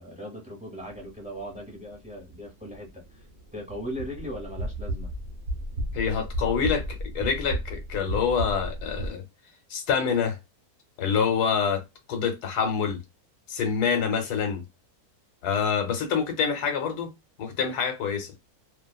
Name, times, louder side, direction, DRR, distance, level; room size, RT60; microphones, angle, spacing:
voice 1, 0.0-3.3 3.5-5.1, equal, 5° right, 0.9 m, -38 dB
sound 1, 0.8-9.1, right 1 dB, 50° right, 0.9 m, -34 dB
voice 2, 5.9-9.2 9.7-10.4 11.0-11.8 12.1-13.0 13.5-14.6 15.4-17.1 17.4-18.3, left 6 dB, 85° left, 1.3 m, -26 dB
2.6 x 2.4 x 2.3 m
omnidirectional pair, 1.6 m